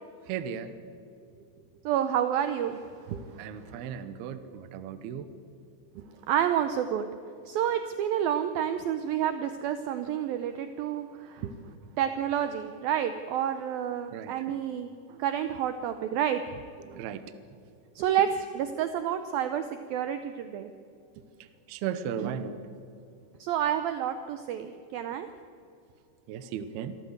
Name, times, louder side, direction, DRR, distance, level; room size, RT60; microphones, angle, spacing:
voice 1, 0.3-0.7 1.4-1.5 3.1-5.3 6.0-6.1 11.4-11.5 14.1-14.6 16.8-17.3 18.0-18.1 21.7-22.6 26.3-27.0, right 8 dB, 75° right, 11 dB, 2.6 m, -36 dB
voice 2, 1.9-2.8 6.3-7.1 7.5-11.4 12.0-16.6 18.0-20.7 23.4-25.3, right 9 dB, 90° right, 9 dB, 2.0 m, -29 dB
26.0 x 13.5 x 8.0 m, 2.6 s
omnidirectional pair, 5.2 m